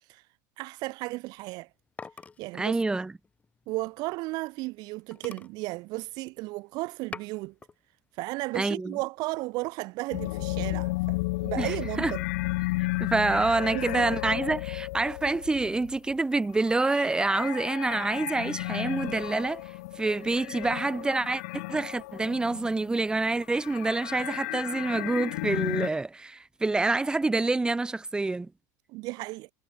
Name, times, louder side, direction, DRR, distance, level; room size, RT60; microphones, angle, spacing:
voice 1, 0.6-1.7 2.4-2.8 3.7-7.5 8.2-12.2 13.7-14.1 28.9-29.5, right 22 dB, 55° right, 2.6 m, -34 dB
sound 1, 1.4-4.5 4.8-4.9 5.1-6.5 6.9-7.8 8.2-8.7, left 4 dB, 15° left, 5.3 m, -46 dB
voice 2, 2.5-3.1 8.5-9.0 11.6-12.1 13.0-19.6 20.0-28.5, right 3 dB, 10° right, 3.6 m, -27 dB
sound 2, 10.1-22.9 23.2-25.9, left 21 dB, 75° left, 6.3 m, -33 dB
supercardioid pair, 130°, 9 cm